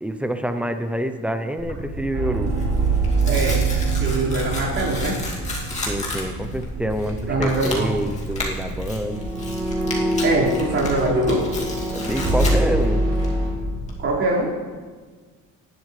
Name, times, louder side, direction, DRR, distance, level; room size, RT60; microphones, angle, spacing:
voice 1, 0.0-2.5 5.9-9.2 11.9-13.1, equal, 5° right, 8 dB, 0.7 m, -27 dB
Tearing, 1.6-13.9, left 1 dB, 20° left, 2.5 m, -31 dB
sound 1, 2.1-7.0 7.2-7.5 8.9-13.5, right 2 dB, 75° right, 4.7 m, -24 dB
voice 2, 3.2-3.6 4.0-5.2 7.3-7.9 10.2-11.5 14.0-14.5, right 2 dB, 45° right, -6 dB, 4.9 m, -22 dB
18.5 x 11.5 x 3.3 m, 1.5 s
cardioid pair, 155°, 32 cm